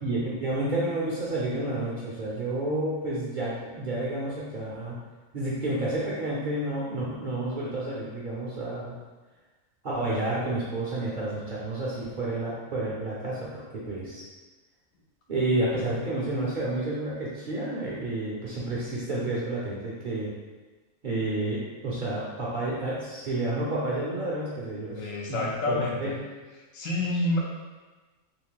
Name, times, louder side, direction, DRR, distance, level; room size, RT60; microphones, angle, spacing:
voice 1, 0.0-5.0 5.3-9.0 9.8-14.3 15.3-20.3 21.0-26.1, right 2 dB, 50° right, -7 dB, 0.7 m, -30 dB
voice 2, 25.0-26.1 26.7-27.4, left 2 dB, 75° left, -2 dB, 1.0 m, -28 dB
2.9 x 2.6 x 3.8 m, 1.3 s
omnidirectional pair, 1.4 m